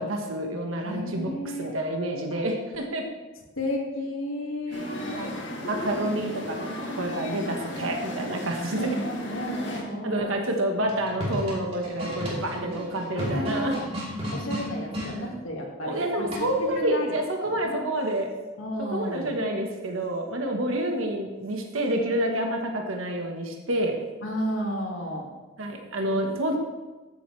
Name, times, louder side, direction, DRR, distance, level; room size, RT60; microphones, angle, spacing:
voice 1, 0.0-3.0 4.7-4.8 5.1-5.3 5.6-8.9 10.0-13.8 15.8-18.3 18.9-23.9 25.6-26.6, right 1 dB, 85° right, 2 dB, 1.2 m, -28 dB
voice 2, 0.8-1.7 3.6-5.3 8.7-10.4 12.3-12.4 13.2-13.8 14.3-17.1 17.6-17.8 18.6-19.3 24.2-25.3 26.0-26.2, equal, 85° left, -1 dB, 1.9 m, -32 dB
sound 1, 4.7-9.8, equal, 60° left, 1.9 m, -35 dB
sound 2, 10.8-15.1 16.3-16.7, equal, 30° right, 2.6 m, -33 dB
13.5 x 7.8 x 3.2 m, 1.2 s
head